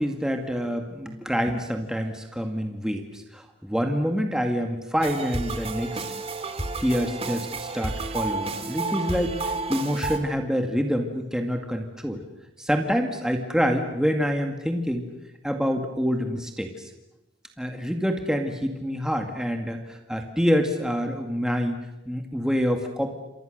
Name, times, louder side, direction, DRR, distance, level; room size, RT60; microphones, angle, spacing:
voice 1, 0.0-6.0 6.8-12.2 12.6-15.1 15.4-16.9 17.6-21.7 22.1-23.1, equal, 5° right, 4 dB, 2.0 m, -26 dB
sound 1, 5.0-10.2, right 3 dB, 30° right, 2.3 m, -31 dB
29.5 x 27.0 x 6.7 m, 0.96 s
head